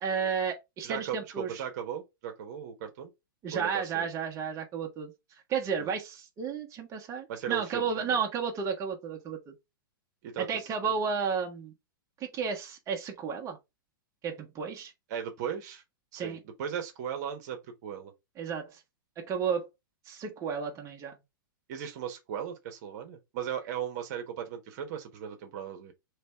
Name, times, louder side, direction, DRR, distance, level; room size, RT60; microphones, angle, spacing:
voice 1, 0.0-1.5 3.4-5.1 5.5-9.5 10.4-11.7 12.2-13.6 14.2-14.9 16.1-16.4 18.4-18.8 19.2-19.7 20.1-21.1, right 6 dB, 25° right, 1.2 m, -32 dB
voice 2, 0.8-3.1 3.5-4.1 5.8-5.9 7.3-8.2 10.2-10.7 15.1-15.8 16.1-18.1 21.7-25.9, right 8 dB, 50° right, 1.2 m, -37 dB
3.3 x 3.3 x 4.4 m
hypercardioid pair, 115°, 12 cm